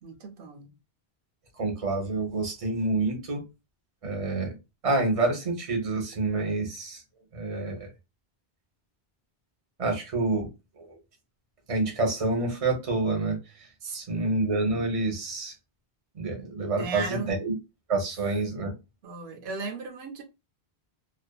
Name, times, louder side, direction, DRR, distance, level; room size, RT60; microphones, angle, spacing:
voice 1, 0.0-0.7 13.8-14.4 16.7-17.3 19.0-20.2, right 4 dB, 80° right, 0.8 m, -36 dB
voice 2, 1.5-3.4 4.0-4.5 4.8-7.0 7.3-7.9 9.8-10.5 10.7-11.0 11.7-13.7 13.9-15.5 16.1-17.5 17.9-18.7, right 2 dB, 35° right, 0.8 m, -28 dB
2.4 x 2.4 x 2.2 m
omnidirectional pair, 1.1 m